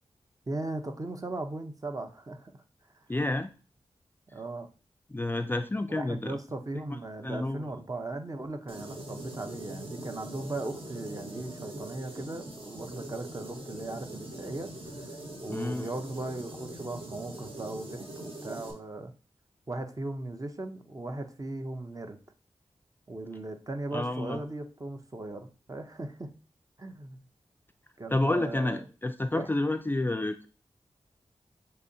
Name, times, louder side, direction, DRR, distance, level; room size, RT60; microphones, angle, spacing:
voice 1, 0.5-2.6 4.3-4.7 5.9-15.2 15.4-19.1 19.7-22.2 23.1-26.3 26.8-27.2 28.0-28.9 29.3-29.5, right 2 dB, 30° right, 6 dB, 0.7 m, -38 dB
voice 2, 3.1-3.5 5.1-6.4 6.9-7.0 7.2-7.7 15.5-15.9 23.9-24.4 28.1-30.5, left 2 dB, 20° left, 8 dB, 0.3 m, -29 dB
sound 1, 8.7-18.7, right 1 dB, 55° right, 1.2 m, -42 dB
6.4 x 2.8 x 2.7 m, 0.35 s
cardioid pair, 50°, 11 cm